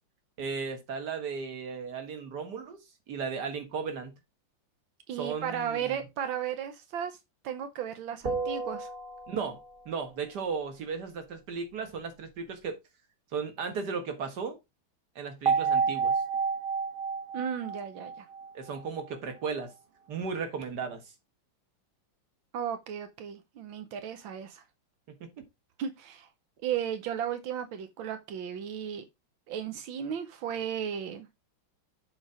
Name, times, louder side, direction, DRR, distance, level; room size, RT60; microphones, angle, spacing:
voice 1, 0.4-2.8 3.1-4.1 5.1-6.1 9.3-12.8 13.3-14.6 15.2-16.1 18.5-19.7 20.1-21.0 25.1-25.5, right 5 dB, 60° right, 2.1 m, -35 dB
voice 2, 5.1-7.2 7.4-8.9 17.3-18.3 22.5-24.6 25.8-26.3 26.6-29.0 29.5-31.3, right 8 dB, 85° right, 1.7 m, -35 dB
sound 1, 8.2-9.8 15.5-18.8, right 5 dB, 35° right, 1.2 m, -30 dB
7.5 x 4.3 x 4.9 m
omnidirectional pair, 2.1 m